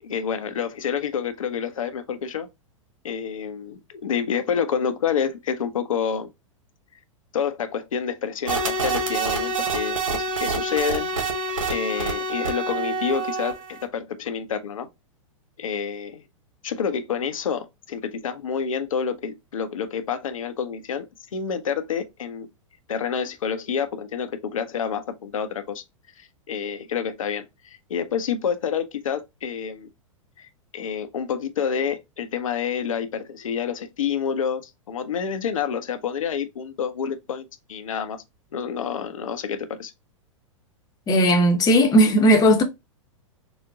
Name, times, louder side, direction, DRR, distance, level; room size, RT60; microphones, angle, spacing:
voice 1, 0.0-2.5 3.0-6.3 7.3-11.1 11.7-14.9 15.6-16.2 16.6-22.5 22.9-25.8 26.2-29.9 30.4-30.5 30.7-38.2 38.5-39.9, left 7 dB, 75° left, 0.7 m, -28 dB
sound 1, 8.5-13.8, right 3 dB, 70° right, 1.1 m, -27 dB
voice 2, 41.1-42.6, equal, 20° left, 0.9 m, -16 dB
4.0 x 2.2 x 3.5 m
hypercardioid pair, 105°, 17 cm